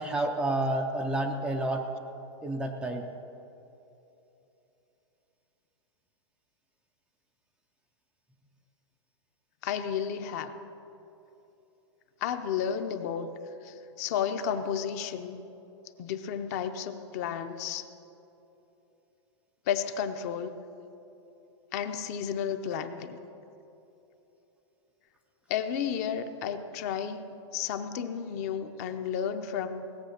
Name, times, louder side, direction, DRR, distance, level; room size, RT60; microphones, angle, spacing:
voice 1, 0.0-1.9 2.4-3.1, right 1 dB, 5° right, 2 dB, 0.4 m, -29 dB
voice 2, 9.6-10.6 12.2-15.4 16.0-17.8 19.7-20.5 21.7-23.2 25.5-29.9, left 8 dB, 35° left, 9 dB, 0.6 m, -32 dB
18.0 x 7.5 x 6.5 m, 3.0 s
supercardioid pair, 170°, 15 cm